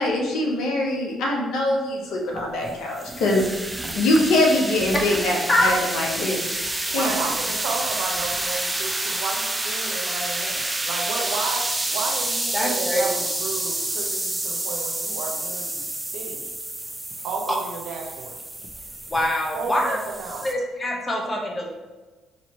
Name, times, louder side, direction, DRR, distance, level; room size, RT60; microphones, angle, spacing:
voice 1, 0.0-6.4 6.9-7.1, left 1 dB, 75° left, 0 dB, 0.9 m, -23 dB
sound 1, 2.3-20.5, right 2 dB, 15° right, 0.4 m, -29 dB
voice 2, 4.9-5.7 12.5-13.1 17.5-17.6 19.1-20.0 20.4-21.7, left 1 dB, 25° left, 1 dB, 0.9 m, -24 dB
voice 3, 6.9-15.9 16.1-16.5 17.2-18.4 19.5-20.5, right 4 dB, 70° right, 1 dB, 0.7 m, -32 dB
4.9 x 2.9 x 2.9 m, 1.2 s
supercardioid pair, 60°, 0 cm